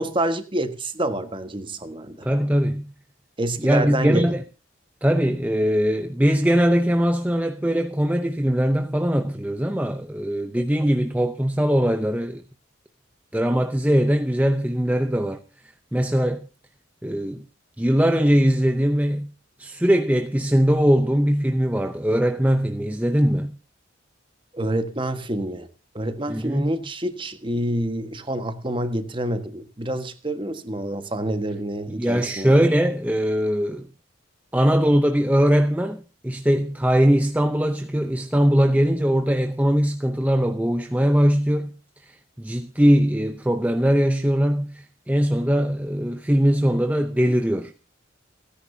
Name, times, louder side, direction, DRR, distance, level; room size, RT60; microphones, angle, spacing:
voice 1, 0.0-2.3 3.4-4.3 24.5-25.7 25.9-32.5, right 1 dB, 25° right, 1.5 m, -27 dB
voice 2, 2.2-2.9 3.6-4.4 5.0-12.4 13.3-15.4 15.9-16.5 17.0-17.4 17.8-19.3 19.6-23.6 26.3-26.7 32.0-33.9 34.5-47.7, equal, 5° right, 0.6 m, -21 dB
29.5 x 10.0 x 2.8 m
head